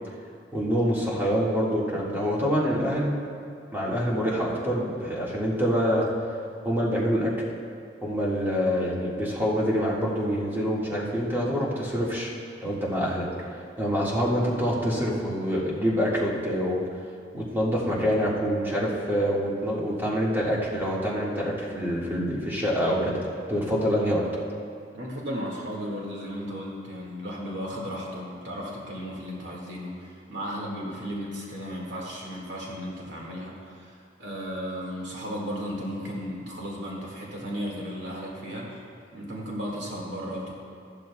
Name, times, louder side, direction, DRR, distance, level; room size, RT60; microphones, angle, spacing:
voice 1, 0.5-3.2 3.7-6.1 6.6-7.3 8.0-12.3 12.6-13.5 13.8-16.8 17.3-23.2 23.5-24.2, equal, 10° right, -6 dB, 1.8 m, -26 dB
voice 2, 24.9-40.5, equal, 80° right, -3 dB, 2.0 m, -35 dB
14.5 x 12.0 x 2.3 m, 2.3 s
head